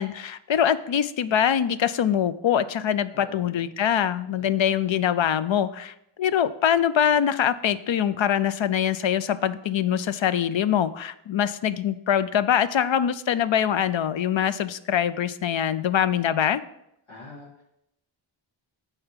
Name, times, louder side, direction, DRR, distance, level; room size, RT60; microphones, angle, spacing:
voice 1, 0.0-16.6, left 9 dB, 70° left, 14 dB, 0.5 m, -23 dB
voice 2, 3.1-3.6 4.3-4.8 17.1-17.6, left 3 dB, 90° left, -8 dB, 2.1 m, -45 dB
9.1 x 3.5 x 5.7 m, 0.79 s
wide cardioid pair, 60°, 48 cm